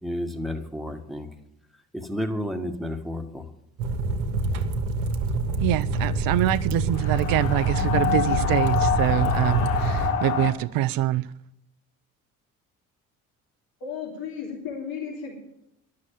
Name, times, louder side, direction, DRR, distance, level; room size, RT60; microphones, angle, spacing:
voice 1, 0.0-1.3 1.9-3.5, left 1 dB, ahead, 1.7 m, -31 dB
sound 1, 3.8-10.1, right 3 dB, 70° right, 1.2 m, -26 dB
voice 2, 5.6-11.3, right 13 dB, 55° right, 0.6 m, -25 dB
sound 2, 6.9-10.5, left 8 dB, 80° left, 1.1 m, -26 dB
voice 3, 13.8-15.3, left 6 dB, 60° left, 3.2 m, -34 dB
11.0 x 6.6 x 8.8 m
hypercardioid pair, 50°, 41 cm